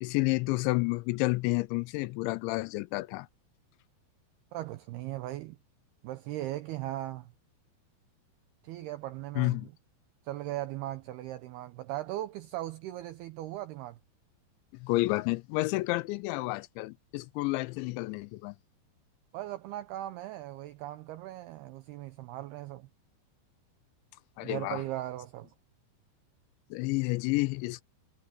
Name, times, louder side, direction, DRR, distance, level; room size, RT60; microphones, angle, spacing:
voice 1, 0.0-3.3 9.4-9.7 14.7-18.6 24.4-24.8 26.7-27.8, left 22 dB, 85° left, 2.8 m, -30 dB
voice 2, 4.5-5.6 6.0-7.3 8.6-9.7 10.2-14.0 19.3-22.9 24.4-25.5, right 15 dB, 85° right, 2.3 m, -38 dB
omnidirectional pair, 5.4 m